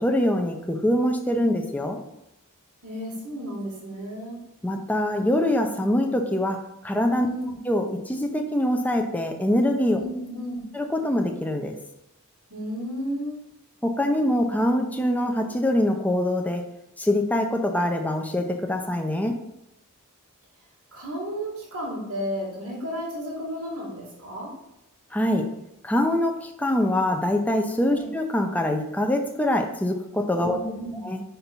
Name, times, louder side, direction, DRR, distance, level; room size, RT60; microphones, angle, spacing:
voice 1, 0.0-2.0 4.6-7.3 7.7-10.0 10.7-11.8 13.8-16.6 17.0-19.4 25.1-25.5 25.8-30.6 31.0-31.2, left 1 dB, 5° left, 4 dB, 0.6 m, -24 dB
voice 2, 2.8-4.4 7.2-7.6 10.0-10.6 12.5-13.4 20.9-24.5 27.9-28.1 30.4-31.0, equal, 85° right, -5 dB, 2.4 m, -33 dB
5.4 x 4.5 x 5.3 m, 0.86 s
head